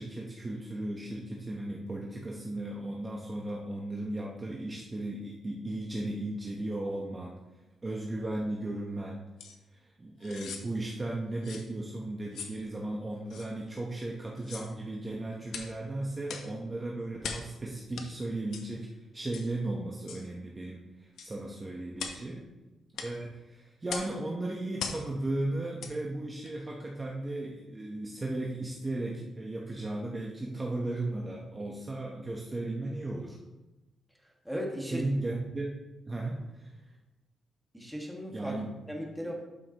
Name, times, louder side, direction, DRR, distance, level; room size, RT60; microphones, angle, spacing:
voice 1, 0.0-7.3 7.8-9.2 9.7-22.5 23.0-33.4 34.9-35.7 36.1-36.8 38.3-38.7, right 2 dB, 25° right, -2 dB, 1.0 m, -36 dB
sound 1, 9.4-9.6 10.2-10.7 11.4-11.7 12.3-12.6 13.3-13.5 14.4-14.7 15.5-15.7 16.3-16.5 17.2-17.5 18.0-18.1 18.5-18.7 19.3-19.5 20.1-20.3 21.2-21.3 22.0-22.2 23.0-23.1 23.9-24.1 24.8-25.1 25.8-26.0 26.4-26.5, left 6 dB, 85° left, 0.9 m, -40 dB
voice 2, 34.5-35.0 37.7-38.5 38.9-39.3, equal, ahead, -1 dB, 1.8 m, -36 dB
11.5 x 5.7 x 3.0 m, 1.1 s
cardioid pair, 110°, 0 cm